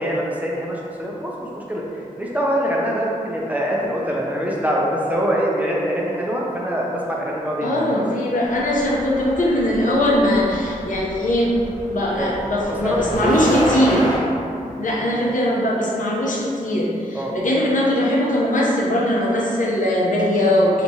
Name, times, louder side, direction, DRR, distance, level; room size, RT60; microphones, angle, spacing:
voice 1, 0.0-7.9 12.1-12.4 12.7-13.8 14.8-15.0 17.1-17.4, equal, 10° right, -4 dB, 0.5 m, -24 dB
voice 2, 7.6-11.5 11.9-14.0 14.8-20.8, left 1 dB, 65° left, -4 dB, 0.7 m, -20 dB
sound 1, 8.4-14.2, equal, 30° left, 1.0 m, -30 dB
3.4 x 2.9 x 2.8 m, 2.5 s
wide cardioid pair, 80°, 14 cm